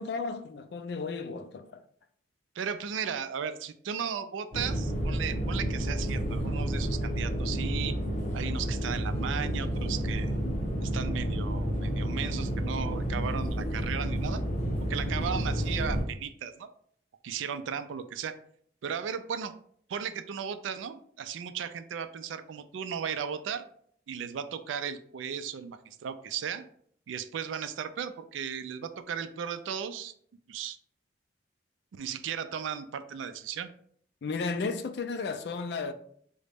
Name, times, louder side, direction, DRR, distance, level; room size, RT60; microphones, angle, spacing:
voice 1, 0.0-1.8 34.2-35.9, left 4 dB, 55° left, 0.3 m, -34 dB
voice 2, 2.6-8.0 8.3-10.4 10.8-14.4 14.9-16.7 17.2-18.4 18.8-19.5 19.9-23.7 24.1-26.6 27.1-30.1 30.5-30.8 31.9-33.7, right 7 dB, 85° right, 0.3 m, -36 dB
sound 1, 4.5-16.0, equal, 35° left, 0.7 m, -30 dB
3.8 x 2.1 x 3.4 m
head